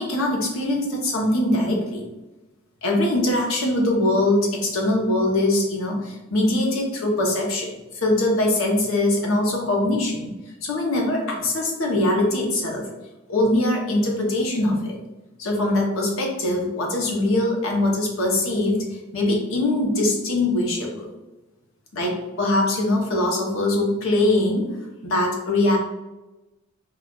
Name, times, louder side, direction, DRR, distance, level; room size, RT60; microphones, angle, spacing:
voice 1, 0.0-2.0 2.8-10.3 10.6-12.9 13.3-15.0 15.4-21.1 21.9-24.7 25.0-25.8, left 1 dB, 75° left, 0 dB, 0.8 m, -22 dB
3.7 x 2.4 x 2.3 m, 1.0 s
head